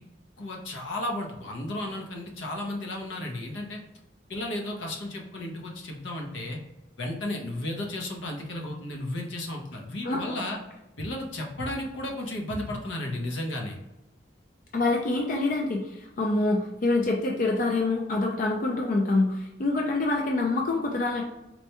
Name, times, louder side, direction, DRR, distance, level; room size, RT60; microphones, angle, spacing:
voice 1, 0.4-3.8 4.3-6.6 7.0-10.6 11.0-13.8, left 1 dB, 80° left, 0 dB, 0.8 m, -33 dB
voice 2, 10.0-10.4 14.7-21.2, left 2 dB, 45° left, 0 dB, 0.4 m, -26 dB
4.2 x 2.2 x 2.9 m, 0.97 s
head